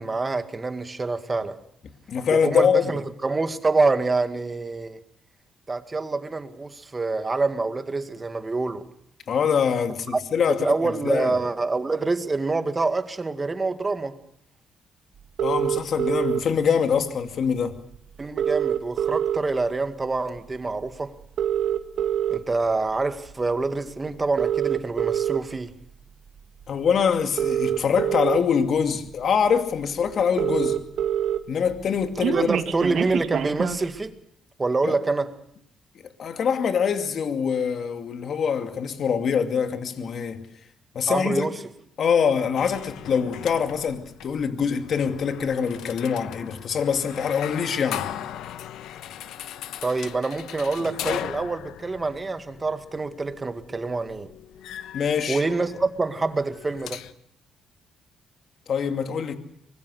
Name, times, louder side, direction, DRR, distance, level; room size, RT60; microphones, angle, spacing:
voice 1, 0.0-1.6 2.3-5.0 5.7-8.9 10.6-14.2 18.2-21.2 22.3-25.8 32.2-34.2 34.6-35.3 41.1-41.5 49.8-54.3 55.3-57.0, right 3 dB, 25° right, 2.0 m, -26 dB
voice 2, 2.1-2.9 9.3-11.3 15.4-17.8 26.7-30.8 31.5-32.5 34.8-34.9 36.2-40.5 40.9-41.4 42.0-48.1 54.9-55.4 58.7-59.4, left 7 dB, 60° left, 2.5 m, -24 dB
sound 1, 15.4-16.4 17.6-17.7 17.9-18.0 18.2-19.7 20.1-20.4 21.2-22.4 23.1-23.3 24.2-25.4 26.6-26.7 27.2-28.4 29.1-29.2 29.5-29.6 29.8-29.9 30.1-31.4 31.7-33.9, right 9 dB, 70° right, 1.8 m, -25 dB
sound 2, 42.6-57.1, left 11 dB, 85° left, 1.2 m, -38 dB
24.5 x 21.5 x 6.5 m
cardioid pair, 90°, 0 cm